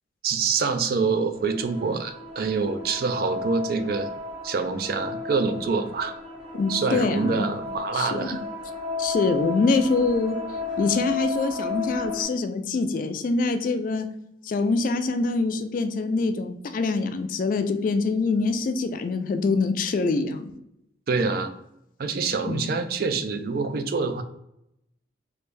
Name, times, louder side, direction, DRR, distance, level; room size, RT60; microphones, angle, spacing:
voice 1, 0.2-4.1 4.4-6.1 6.7-8.4 21.1-21.5 22.0-24.2, right 4 dB, 55° right, 8 dB, 0.4 m, -26 dB
sound 1, 1.4-12.2, left 3 dB, 35° right, 1.1 m, -34 dB
voice 2, 6.5-7.4 7.9-8.3 9.0-10.4 10.8-14.1 14.4-20.5 21.2-21.3 22.5-22.7, left 3 dB, 45° left, 8 dB, 0.3 m, -25 dB
3.2 x 2.5 x 3.2 m, 0.82 s
head